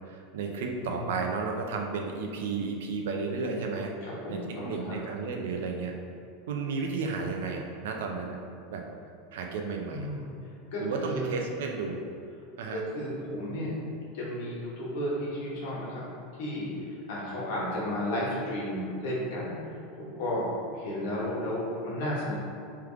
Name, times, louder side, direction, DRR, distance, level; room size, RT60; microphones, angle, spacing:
voice 1, 0.1-3.9 4.3-5.9 6.5-8.4 8.7-8.8 9.3-10.1 10.8-12.0 12.6-12.8, right 4 dB, 85° right, 2 dB, 0.5 m, -33 dB
voice 2, 0.8-1.3 4.0-5.0 9.9-10.3 10.7-11.3 12.7-13.8 14.1-16.1 16.3-20.5 20.7-22.3, left 1 dB, 70° left, -5 dB, 1.2 m, -33 dB
3.4 x 3.3 x 3.5 m, 2.4 s
supercardioid pair, 145°, 0 cm